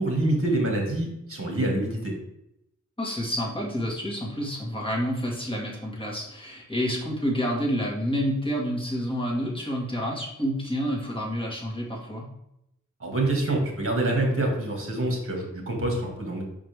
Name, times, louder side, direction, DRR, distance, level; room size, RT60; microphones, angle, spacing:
voice 1, 0.0-2.1 13.0-16.4, right 1 dB, 45° right, 1 dB, 2.0 m, -26 dB
voice 2, 3.0-12.3, equal, 15° left, -3 dB, 1.9 m, -29 dB
5.6 x 5.1 x 3.5 m, 0.81 s
wide cardioid pair, 75°, 32 cm